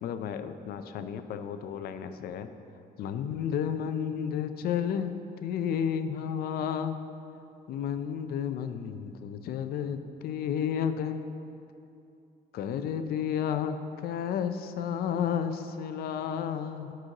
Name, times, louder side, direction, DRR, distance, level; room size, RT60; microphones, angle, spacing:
voice 1, 0.0-2.5 3.0-5.1 5.4-7.0 7.7-11.3 12.5-17.0, left 8 dB, 65° left, 9 dB, 0.5 m, -32 dB
11.5 x 6.2 x 2.9 m, 2.6 s
cardioid pair, 110°, 17 cm